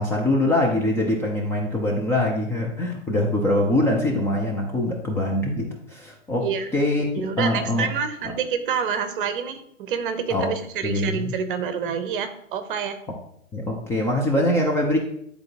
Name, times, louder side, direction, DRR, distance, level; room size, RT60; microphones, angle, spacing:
voice 1, 0.0-7.9 10.3-10.5 10.8-11.3 13.5-15.0, left 1 dB, 5° left, -2 dB, 0.5 m, -23 dB
voice 2, 7.1-13.0, right 6 dB, 40° right, 9 dB, 0.9 m, -27 dB
10.5 x 4.0 x 2.9 m, 0.71 s
figure-of-eight pair, 115°, 40 cm